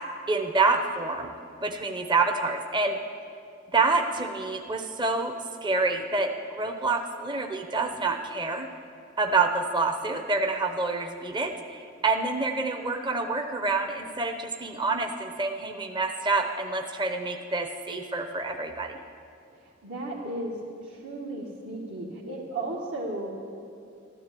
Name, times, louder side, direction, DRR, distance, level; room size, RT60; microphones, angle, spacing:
voice 1, 0.3-1.3 1.6-3.0 3.7-5.3 5.6-8.7 9.2-19.0, right 3 dB, 25° right, 5 dB, 0.7 m, -27 dB
voice 2, 19.6-20.6 20.8-23.3, right 2 dB, 70° right, -6 dB, 2.0 m, -35 dB
14.0 x 12.5 x 8.4 m, 2.5 s
head